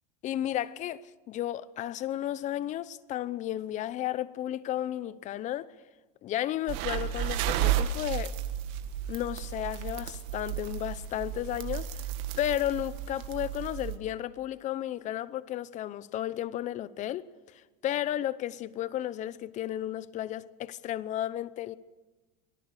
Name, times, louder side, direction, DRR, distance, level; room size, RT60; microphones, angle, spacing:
voice 1, 0.2-5.7 6.2-8.3 9.1-12.0 12.3-17.2 17.8-21.8, left 12 dB, 35° left, 0.8 m, -33 dB
sound 1, 6.7-14.0, right 11 dB, 60° right, 1.9 m, -33 dB
25.0 x 18.5 x 6.7 m
supercardioid pair, 140°, 21 cm